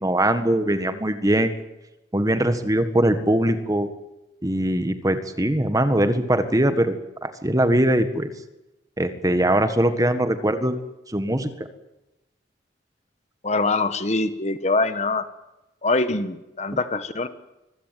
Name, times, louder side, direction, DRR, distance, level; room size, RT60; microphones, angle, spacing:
voice 1, 0.0-1.6 2.1-3.9 4.4-6.9 7.2-8.3 9.0-10.7 11.1-11.5 16.7-16.8, right 1 dB, 20° right, 9 dB, 1.6 m, -21 dB
voice 2, 13.4-15.2 15.8-17.3, left 3 dB, 40° left, 11 dB, 1.4 m, -23 dB
25.0 x 16.0 x 9.2 m, 0.97 s
head